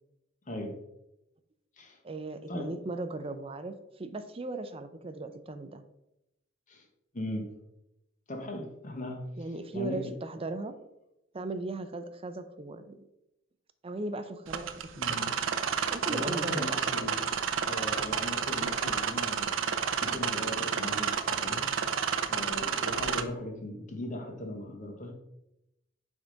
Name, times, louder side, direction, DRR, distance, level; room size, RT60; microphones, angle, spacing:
voice 1, 0.5-0.8 1.8-2.0 2.5-2.7 6.7-6.9 7.1-7.5 8.3-9.2 9.7-10.1 14.9-15.3 15.8-17.2 17.7-19.5 20.0-21.7 22.3-25.1, left 1 dB, 40° left, 2 dB, 1.1 m, -38 dB
voice 2, 2.0-5.8 9.4-10.7 11.3-13.1 13.8-15.2 15.9-17.1, right 2 dB, 30° right, 10 dB, 0.5 m, -38 dB
sound 1, 14.5-23.2, right 7 dB, 90° right, 0.5 m, -30 dB
7.8 x 3.7 x 3.9 m, 0.89 s
head